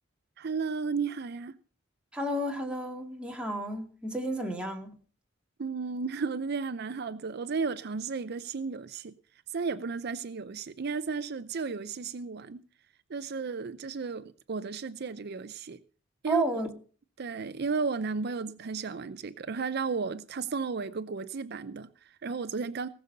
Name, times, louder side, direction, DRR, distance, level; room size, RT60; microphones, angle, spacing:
voice 1, 0.4-1.6 5.6-9.1 9.5-12.6 13.1-15.8 16.2-16.6 17.2-22.9, right 4 dB, 55° right, 0.5 m, -34 dB
voice 2, 2.1-4.9 16.3-16.7, right 1 dB, 5° right, 2.2 m, -32 dB
18.5 x 6.7 x 6.7 m
head